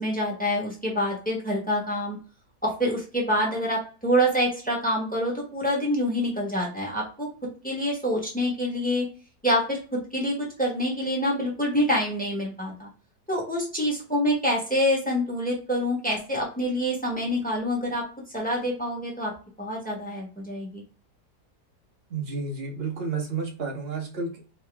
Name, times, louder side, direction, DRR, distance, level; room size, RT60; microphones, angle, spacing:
voice 1, 0.0-2.2 2.6-7.3 7.6-9.1 9.4-12.9 13.3-18.0 18.3-19.3 19.6-20.8, equal, 5° left, -2 dB, 1.1 m, -26 dB
voice 2, 22.1-24.4, right 4 dB, 45° right, 1 dB, 1.0 m, -31 dB
3.6 x 3.0 x 3.4 m, 0.38 s
omnidirectional pair, 1.8 m